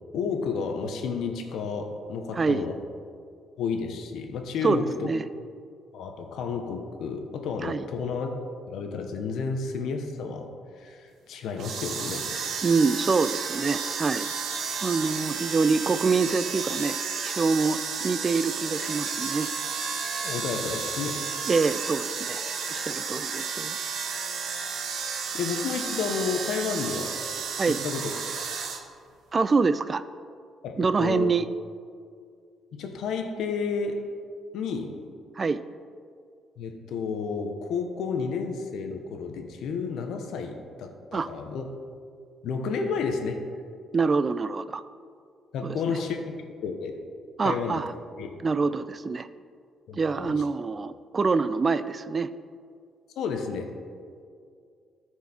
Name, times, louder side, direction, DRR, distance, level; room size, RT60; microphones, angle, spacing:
voice 1, 0.1-2.8 3.6-5.1 5.9-8.4 8.7-10.5 10.8-12.3 20.2-21.3 25.3-27.2 27.7-28.1 30.6-31.3 32.7-34.0 34.5-35.0 36.6-41.6 42.4-43.4 45.5-46.2 46.6-47.0 47.4-47.8 48.2-48.3 49.9-50.4 53.2-53.7, left 5 dB, 80° left, 5 dB, 1.0 m, -31 dB
voice 2, 2.3-2.7 4.6-5.2 7.6-7.9 12.6-14.3 14.8-19.5 21.5-22.4 22.7-23.8 27.6-27.8 29.3-30.0 30.8-31.5 35.4-35.6 41.1-41.3 43.9-44.8 45.6-46.0 47.4-47.9 48.4-49.3 49.9-52.3, right 4 dB, 35° right, 14 dB, 0.4 m, -25 dB
sound 1, 11.6-28.8, right 5 dB, 70° right, 1.0 m, -32 dB
13.5 x 4.7 x 4.4 m, 2.2 s
cardioid pair, 90°, 0 cm